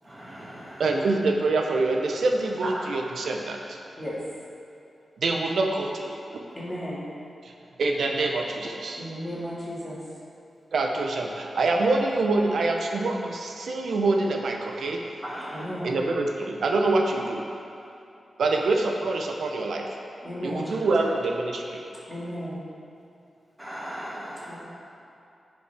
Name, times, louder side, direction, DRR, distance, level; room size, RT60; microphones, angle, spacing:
voice 1, 0.0-1.0 2.6-2.8 15.2-15.7 23.6-24.6, equal, 10° right, -7 dB, 1.9 m, -37 dB
voice 2, 0.8-3.8 5.2-6.2 7.8-9.0 10.7-15.0 15.8-17.4 18.4-19.9 20.4-21.8, right 3 dB, 75° right, 1 dB, 0.6 m, -25 dB
voice 3, 6.5-7.0 9.0-10.0 15.5-16.0 20.2-20.9 22.1-22.6 24.5-24.6, equal, 15° left, -8 dB, 2.0 m, -34 dB
14.5 x 5.3 x 3.4 m, 2.7 s
wide cardioid pair, 180°, 0 cm